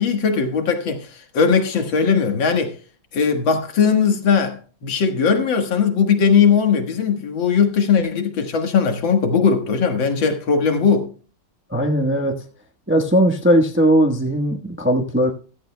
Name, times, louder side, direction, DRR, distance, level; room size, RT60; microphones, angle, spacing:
voice 1, 0.0-2.7 3.1-11.1, left 6 dB, 70° left, 2.2 m, -19 dB
voice 2, 11.7-12.3 12.9-15.3, equal, 10° right, 0.8 m, -18 dB
15.0 x 13.0 x 2.2 m
omnidirectional pair, 2.2 m